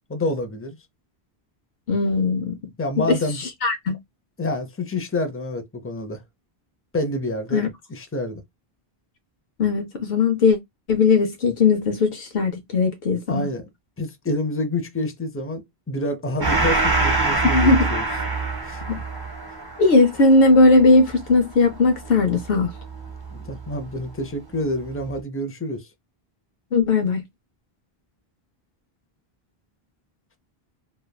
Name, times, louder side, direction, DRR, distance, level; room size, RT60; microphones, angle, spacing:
voice 1, 0.1-0.8 2.8-3.4 4.4-6.2 6.9-8.4 13.3-13.7 14.0-18.1 18.7-18.8 23.3-25.9, left 1 dB, 20° left, 0.4 m, -28 dB
voice 2, 1.9-2.6 3.0-4.0 7.5-7.7 9.6-10.6 10.9-13.5 17.5-17.9 18.9-19.0 19.8-22.7 26.7-27.2, left 3 dB, 70° left, 0.9 m, -18 dB
Gong, 16.4-23.4, right 3 dB, 25° right, 0.7 m, -25 dB
3.2 x 2.2 x 2.2 m
omnidirectional pair, 1.0 m